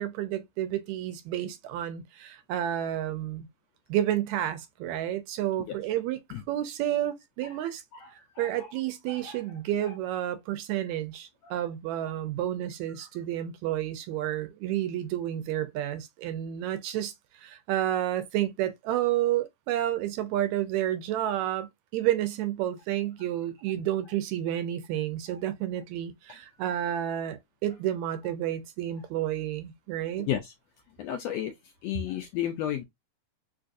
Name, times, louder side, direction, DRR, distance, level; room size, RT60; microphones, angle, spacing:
voice 1, 0.0-3.5 3.9-7.8 8.1-30.3, right 12 dB, 80° right, 1.8 m, -30 dB
voice 2, 7.4-8.7 9.1-9.4 10.8-10.9 11.4-11.5 13.0-13.1 25.3-25.4 30.2-30.5 31.0-31.5 31.8-32.8, left 11 dB, 80° left, 1.5 m, -34 dB
4.6 x 2.5 x 2.5 m
omnidirectional pair, 3.4 m